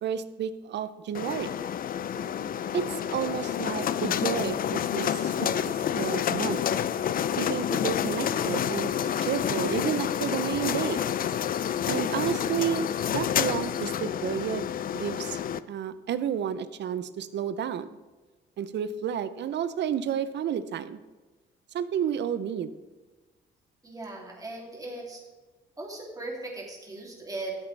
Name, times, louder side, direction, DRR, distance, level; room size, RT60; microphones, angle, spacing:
voice 1, 0.0-1.6 2.7-6.6 7.4-8.9 9.2-11.0 11.9-15.4 15.7-17.9 18.6-21.0 21.7-22.7, right 9 dB, 60° right, 14 dB, 0.6 m, -31 dB
sound 1, 1.1-15.6, left 9 dB, 45° left, 0.4 m, -29 dB
voice 2, 23.8-25.2 25.8-27.6, right 2 dB, 15° right, -2 dB, 2.7 m, -38 dB
12.5 x 8.1 x 3.3 m, 1.2 s
cardioid pair, 90°, 20 cm